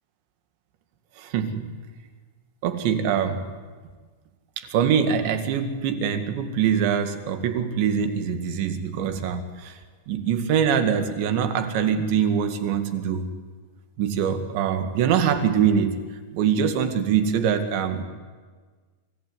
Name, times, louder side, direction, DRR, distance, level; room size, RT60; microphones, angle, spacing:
voice 1, 1.2-1.7 2.6-3.4 4.6-9.8 10.1-13.3 14.0-16.0 16.3-18.0, right 7 dB, 40° right, 8 dB, 2.0 m, -23 dB
25.0 x 15.5 x 9.5 m, 1.5 s
supercardioid pair, 170°, 0 cm